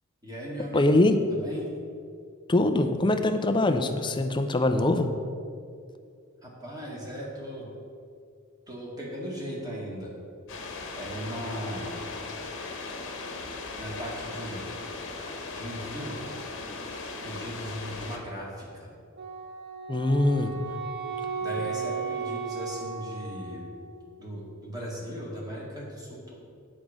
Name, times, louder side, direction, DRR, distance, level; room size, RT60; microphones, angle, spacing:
voice 1, 0.2-0.9 1.3-1.7 6.4-7.8 8.7-10.1 10.9-11.9 13.8-14.8 15.5-16.2 17.0-18.9 21.4-23.6 24.2-26.3, equal, 15° right, -4 dB, 2.1 m, -37 dB
voice 2, 0.7-1.2 2.5-5.1 19.9-20.5, left 2 dB, 20° left, 7 dB, 0.5 m, -23 dB
sound 1, 10.5-18.2, left 3 dB, 55° left, 1.1 m, -38 dB
Wind instrument woodwind instrument, 19.2-24.0, right 5 dB, 50° right, 0.9 m, -35 dB
8.2 x 5.1 x 7.3 m, 2.3 s
head